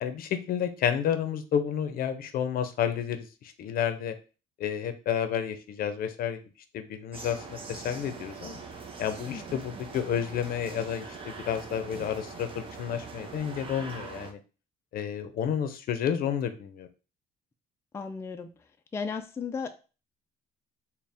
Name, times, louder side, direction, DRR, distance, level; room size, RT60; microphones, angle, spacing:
voice 1, 0.0-3.3 3.6-4.2 4.6-6.4 6.7-8.6 9.0-14.4 14.9-16.9, left 8 dB, 60° left, 9 dB, 0.6 m, -30 dB
sound 1, 7.1-14.3, right 4 dB, 30° right, 0.6 m, -42 dB
voice 2, 17.9-18.5 18.9-19.7, left 5 dB, 15° left, 7 dB, 0.3 m, -34 dB
4.0 x 2.2 x 3.4 m, 0.34 s
cardioid pair, 110°, 17 cm